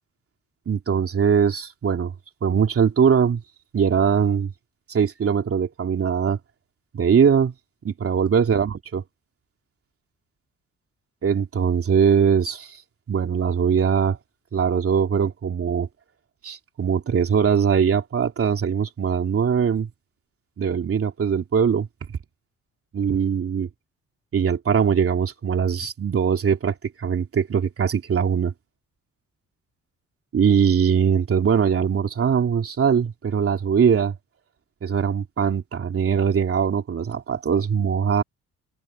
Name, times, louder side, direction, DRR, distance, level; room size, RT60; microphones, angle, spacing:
voice 1, 0.7-2.1 2.4-3.4 3.7-4.5 4.9-6.4 6.9-7.5 7.8-9.0 11.2-12.8 13.1-14.2 14.5-15.9 16.4-19.9 20.6-21.9 22.9-23.7 24.3-28.5 30.3-34.1 34.8-38.2, right 7 dB, 50° right, 3.1 m, -21 dB
cardioid pair, 90°, 30 cm